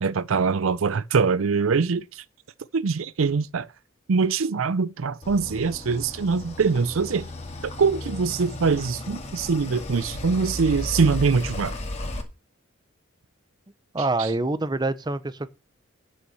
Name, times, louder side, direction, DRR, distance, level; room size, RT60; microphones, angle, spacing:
voice 1, 0.0-2.2 2.7-3.7 4.1-7.3 7.8-11.7 14.2-14.3, right 5 dB, 80° right, 0.5 m, -23 dB
sound 1, 5.2-12.2, left 1 dB, 30° left, 2.1 m, -34 dB
voice 2, 13.9-15.5, right 2 dB, 20° right, 0.7 m, -26 dB
9.3 x 6.5 x 7.0 m
head